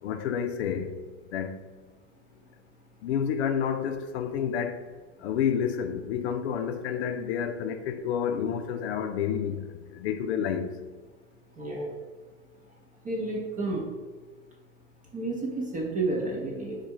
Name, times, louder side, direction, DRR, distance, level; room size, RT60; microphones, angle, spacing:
voice 1, 0.0-1.0 1.3-1.6 3.0-4.8 5.2-10.8, left 8 dB, 65° left, 0.5 m, -29 dB
voice 2, 11.6-11.9 13.0-13.8 15.1-16.8, right 2 dB, 25° right, 0.7 m, -30 dB
4.1 x 2.3 x 4.6 m
hypercardioid pair, 110°, 34 cm